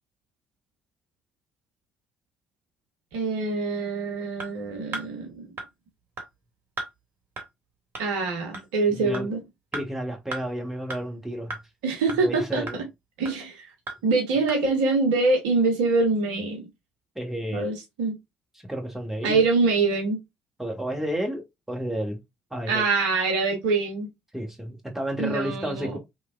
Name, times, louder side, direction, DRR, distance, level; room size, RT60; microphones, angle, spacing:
voice 1, 3.1-5.5 8.0-9.4 11.8-12.6 13.2-13.7 14.0-16.7 17.5-18.2 19.2-20.2 22.7-24.1 25.2-26.0, right 3 dB, 70° right, 0.7 m, -24 dB
sound 1, 4.4-4.5 4.9-5.1 5.6-5.7 6.2-6.3 6.8-6.9 7.4-7.5 8.0-8.1 8.5-8.7 9.1-9.3 9.7-9.8 10.3-10.4 10.9-11.0 11.5-11.6 12.1-12.2 12.7-12.8 13.3-13.4 13.9-14.0 14.5-14.6, right 3 dB, 45° right, 1.0 m, -34 dB
voice 2, 8.9-9.3 9.7-11.5 12.2-12.8 17.1-17.7 18.7-19.4 20.6-21.4 21.7-22.2 22.5-22.8 24.3-26.0, right 1 dB, 5° right, 1.1 m, -31 dB
3.1 x 2.2 x 2.3 m
figure-of-eight pair, 50°, 5 cm